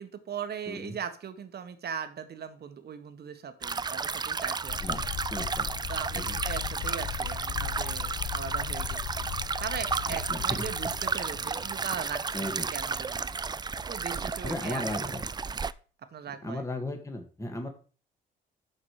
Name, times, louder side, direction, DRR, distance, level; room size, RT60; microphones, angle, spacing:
voice 1, 0.0-5.1 5.9-9.3 9.6-13.3 13.9-15.2 16.1-16.6, right 7 dB, 55° right, 9 dB, 1.5 m, -39 dB
voice 2, 0.7-1.0 4.8-5.0 5.3-5.7 6.1-6.4 10.1-10.7 12.3-12.7 14.4-15.2 16.4-17.7, left 1 dB, 15° left, 3 dB, 1.9 m, -36 dB
sound 1, 3.6-15.7, right 5 dB, 20° right, 0.4 m, -33 dB
sound 2, 4.7-12.3, left 10 dB, 65° left, 1.1 m, -38 dB
10.0 x 6.5 x 4.9 m, 0.39 s
cardioid pair, 90°, 20 cm